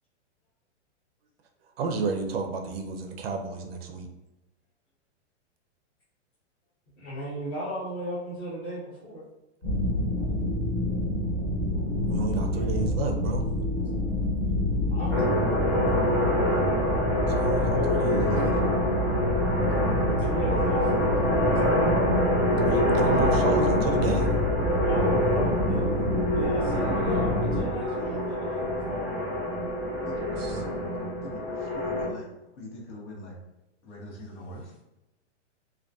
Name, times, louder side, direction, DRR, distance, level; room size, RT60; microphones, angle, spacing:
voice 1, 1.8-4.1 12.1-13.4 17.4-18.5 22.6-24.3 30.4-30.6, right 4 dB, 55° right, 4 dB, 0.5 m, -30 dB
voice 2, 7.0-9.2 12.5-12.9 14.9-15.1 17.5-17.8 19.9-21.2 24.8-25.9 26.3-29.1, right 1 dB, 10° left, -11 dB, 0.3 m, -36 dB
sound 1, 9.6-27.6, left 1 dB, 50° left, 1.4 m, -28 dB
sound 2, 15.1-32.1, equal, 30° left, 1.0 m, -26 dB
voice 3, 30.0-30.9 31.2-32.3 32.6-33.3 33.8-34.7, left 1 dB, 70° left, -3 dB, 1.0 m, -43 dB
2.5 x 2.3 x 2.2 m, 0.98 s
hypercardioid pair, 160°, 36 cm